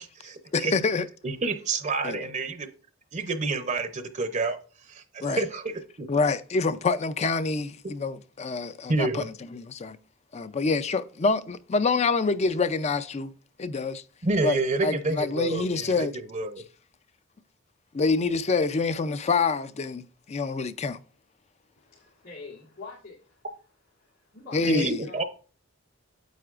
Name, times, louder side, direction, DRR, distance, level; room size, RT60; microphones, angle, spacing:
voice 1, 0.0-0.7 1.2-2.7 3.1-4.6 4.9-6.1 8.9-9.3 14.2-16.6 24.7-25.2, right 3 dB, 35° right, 0.7 m, -29 dB
voice 2, 0.5-1.1 2.0-2.2 5.2-5.4 6.1-10.0 10.3-13.3 13.6-14.0 14.4-16.1 17.9-21.0 24.5-25.0, left 4 dB, 35° left, 0.4 m, -26 dB
voice 3, 21.8-23.5 24.0-25.3, left 3 dB, 85° left, 2.7 m, -46 dB
9.2 x 7.7 x 2.5 m
head